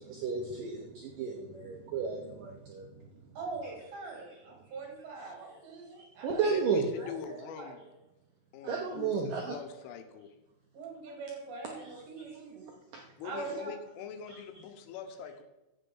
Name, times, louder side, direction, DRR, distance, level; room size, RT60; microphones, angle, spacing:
voice 1, 0.0-2.9 6.2-6.9 8.7-9.6 12.9-13.0 14.3-14.4, right 5 dB, 90° right, 1 dB, 1.8 m, -33 dB
voice 2, 3.4-6.7 7.0-7.8 8.6-8.9 10.7-12.7 13.2-13.7, right 4 dB, 65° right, 1 dB, 4.4 m, -42 dB
voice 3, 6.5-7.8 8.5-10.3 13.2-15.4, left 8 dB, 85° left, 8 dB, 3.6 m, -43 dB
15.5 x 6.7 x 5.5 m, 1.0 s
omnidirectional pair, 5.6 m